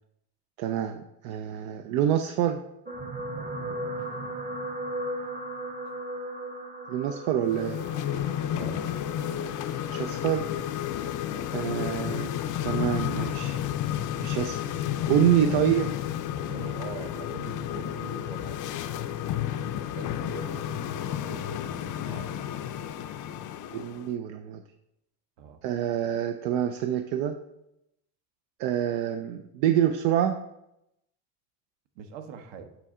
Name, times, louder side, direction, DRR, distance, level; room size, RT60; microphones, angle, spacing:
voice 1, 0.6-2.6 6.9-7.8 9.9-10.4 11.5-12.3 12.6-13.6 14.2-14.6 15.1-15.9 23.7-24.6 25.6-27.3 28.6-30.4, right 10 dB, 80° right, 7 dB, 0.6 m, -26 dB
sound 1, 2.9-11.3 12.1-12.3 12.6-12.7, right 1 dB, 15° right, 0.7 m, -37 dB
sound 2, 7.4-24.1, left 11 dB, 40° left, 0.5 m, -31 dB
voice 2, 8.5-9.2 11.3-11.5 15.4-15.9 16.4-22.4 25.4-25.6 31.9-32.7, right 6 dB, 65° right, 7 dB, 1.1 m, -43 dB
8.2 x 4.4 x 3.7 m, 0.83 s
cardioid pair, 115°, 48 cm